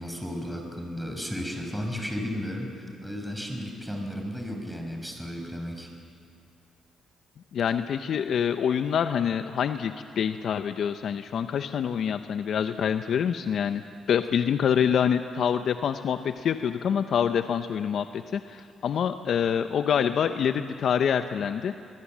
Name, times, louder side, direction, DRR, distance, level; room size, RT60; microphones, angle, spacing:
voice 1, 0.0-5.9, equal, ahead, 2 dB, 5.4 m, -34 dB
voice 2, 7.5-13.8 14.1-21.7, left 8 dB, 65° left, 9 dB, 0.7 m, -26 dB
23.0 x 22.0 x 7.4 m, 2.5 s
supercardioid pair, 65°, 0 cm